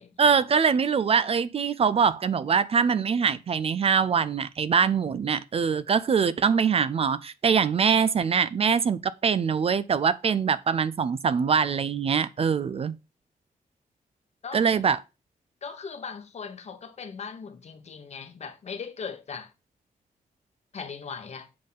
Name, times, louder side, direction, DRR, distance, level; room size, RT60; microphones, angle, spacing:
voice 1, 0.2-12.9 14.5-15.0, right 6 dB, 40° right, 0.4 m, -23 dB
voice 2, 15.6-19.5 20.7-21.5, left 5 dB, 50° left, 1.1 m, -39 dB
7.7 x 3.7 x 5.5 m
wide cardioid pair, 160°, 15 cm